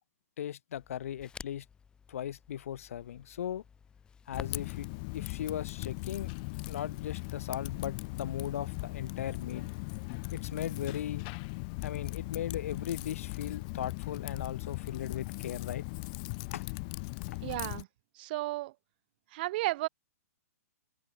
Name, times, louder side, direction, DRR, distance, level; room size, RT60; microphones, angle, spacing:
voice 1, 0.4-1.6 2.1-3.6 4.3-4.9 5.1-6.3 6.7-9.7 10.3-11.3 11.8-15.9 16.5-16.7 17.3-17.4, left 10 dB, 60° left, 0.9 m, -38 dB
Crackle, 0.7-11.7, left 6 dB, 10° left, 1.1 m, -54 dB
Typing, 4.3-17.8, left 31 dB, 30° left, 1.1 m, -39 dB
voice 2, 17.4-17.9 18.1-18.7 19.3-19.9, right 19 dB, 40° right, 0.9 m, -33 dB
hypercardioid pair, 160°, 8 cm